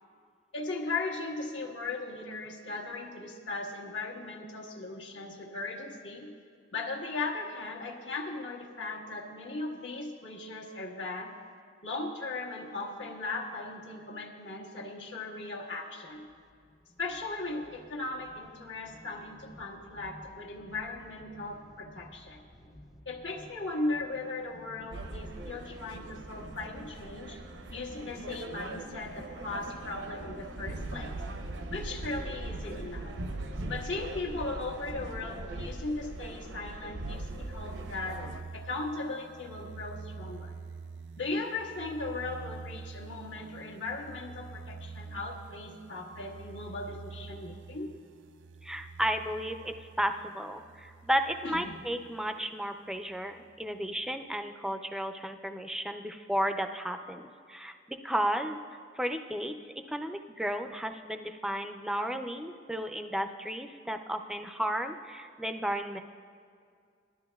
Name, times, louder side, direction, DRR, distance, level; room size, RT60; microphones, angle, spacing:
voice 1, 0.5-6.3 6.7-11.3 11.8-16.3 17.0-22.4 23.0-27.4 27.7-31.2 31.7-33.2 33.7-38.2 38.5-40.5 41.2-47.9 51.4-51.7, left 3 dB, 75° left, -2 dB, 1.5 m, -37 dB
sound 1, 16.1-35.5, equal, 45° left, 1.4 m, -55 dB
sound 2, 24.9-38.4, right 2 dB, 85° right, 0.7 m, -40 dB
sound 3, 37.1-52.4 52.9-53.9, right 4 dB, 70° right, 0.3 m, -47 dB
voice 2, 48.6-58.6 59.0-59.6 59.9-66.0, equal, 5° right, 6 dB, 0.4 m, -33 dB
19.5 x 12.5 x 2.3 m, 2.2 s
head